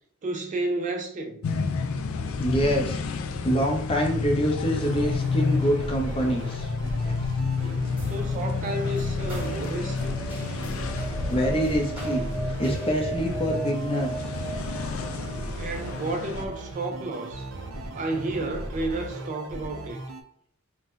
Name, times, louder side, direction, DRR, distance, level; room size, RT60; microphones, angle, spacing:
voice 1, 0.2-1.4 8.1-10.2 15.6-17.5 17.9-20.0, right 2 dB, 35° right, 0.3 m, -31 dB
sound 1, 1.4-16.4, left 4 dB, 70° left, 0.3 m, -31 dB
voice 2, 2.4-3.0 3.4-6.7 7.0-7.3 11.3-12.2 12.6-14.1, equal, 25° left, 0.6 m, -25 dB
sound 2, 4.8-20.2, right 1 dB, 85° right, 0.5 m, -37 dB
sound 3, 8.0-16.7, right 1 dB, 5° right, 1.2 m, -35 dB
2.7 x 2.0 x 3.7 m
head